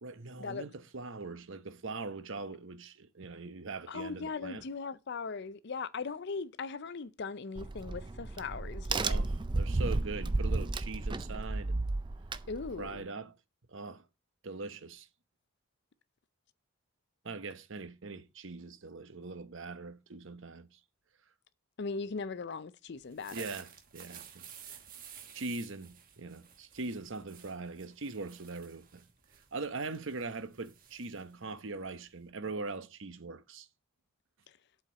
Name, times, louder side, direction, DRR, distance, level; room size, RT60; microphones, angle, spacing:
voice 1, 0.0-4.6 9.0-11.9 12.8-13.4 13.7-14.1 14.4-15.1 17.2-20.8 23.3-24.8 25.3-29.0 29.5-33.7, right 3 dB, 55° right, 0.9 m, -41 dB
voice 2, 3.9-9.2 12.5-13.1 21.8-23.6 34.5-34.6, left 4 dB, 50° left, 0.5 m, -39 dB
Crack, 7.6-13.0, right 2 dB, 20° right, 0.4 m, -33 dB
sound 1, 23.0-32.3, right 8 dB, 40° right, 1.3 m, -53 dB
7.8 x 4.4 x 6.7 m
head